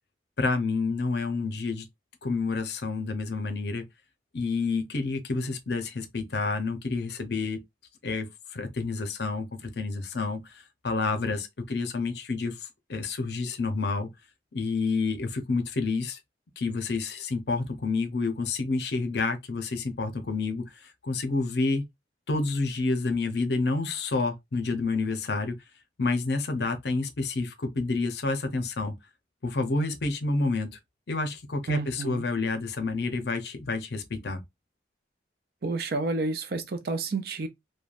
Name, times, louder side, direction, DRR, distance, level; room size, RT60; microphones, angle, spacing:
voice 1, 0.4-1.9 2.2-3.8 4.3-7.6 8.0-14.1 14.5-16.2 16.6-20.6 21.0-21.8 22.3-25.6 26.0-28.9 29.4-30.8 31.1-34.4, left 3 dB, 60° left, 0.6 m, -29 dB
voice 2, 31.7-32.2 35.6-37.5, right 3 dB, 55° right, 0.5 m, -30 dB
3.2 x 2.2 x 2.4 m
head